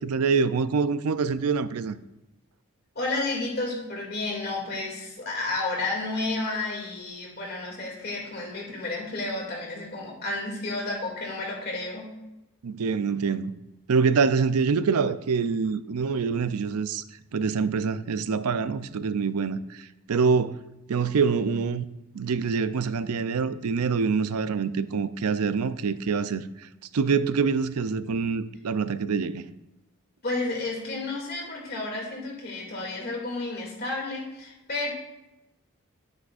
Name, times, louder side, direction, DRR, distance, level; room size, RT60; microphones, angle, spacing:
voice 1, 0.0-2.0 12.6-13.5 13.9-17.0 17.3-20.6 20.9-21.8 22.1-26.7 26.9-29.4, right 5 dB, 90° right, 0.5 m, -25 dB
voice 2, 2.9-12.1 30.2-34.9, left 2 dB, 45° left, 2.5 m, -31 dB
11.0 x 9.7 x 2.5 m
head